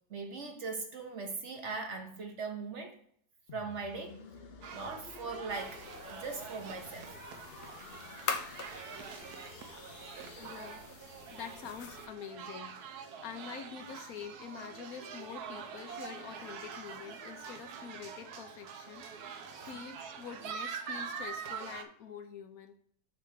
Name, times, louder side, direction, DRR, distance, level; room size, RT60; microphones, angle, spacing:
voice 1, 0.1-3.0 3.5-4.2 4.7-5.8 6.1-7.1 19.5-19.8, right 4 dB, 50° right, 1.2 m, -40 dB
sound 1, 3.5-11.4, left 5 dB, 50° left, 0.8 m, -53 dB
sound 2, 4.6-21.8, right 6 dB, 80° right, 1.4 m, -45 dB
sound 3, 5.5-12.1, left 5 dB, 85° left, 1.5 m, -44 dB
voice 2, 10.1-22.8, left 7 dB, 70° left, 1.2 m, -46 dB
6.8 x 3.5 x 6.2 m
omnidirectional pair, 1.7 m